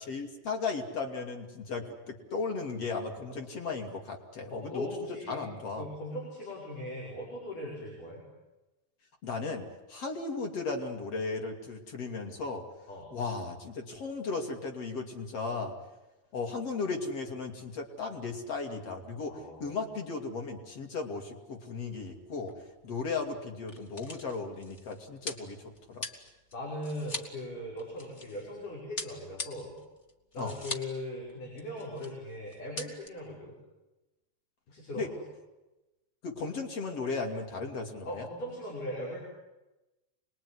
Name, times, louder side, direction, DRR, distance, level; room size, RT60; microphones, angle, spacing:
voice 1, 0.0-4.9 5.3-5.9 9.2-12.6 13.1-15.8 16.3-22.5 22.8-26.1 30.4-30.5 34.9-35.1 36.2-38.3, left 4 dB, 50° left, 2 dB, 3.3 m, -36 dB
voice 2, 4.5-5.4 5.8-8.3 12.9-13.1 19.3-19.9 26.5-29.8 30.3-33.6 34.7-35.1 38.1-39.2, left 1 dB, 80° left, -3 dB, 7.2 m, -39 dB
sound 1, 22.0-22.2 22.5-22.6 23.4-28.5 29.0-31.0 31.3-31.4 31.6-32.1 32.5-33.1, left 2 dB, 25° left, 1.8 m, -41 dB
26.0 x 20.5 x 9.7 m, 1.0 s
omnidirectional pair, 3.6 m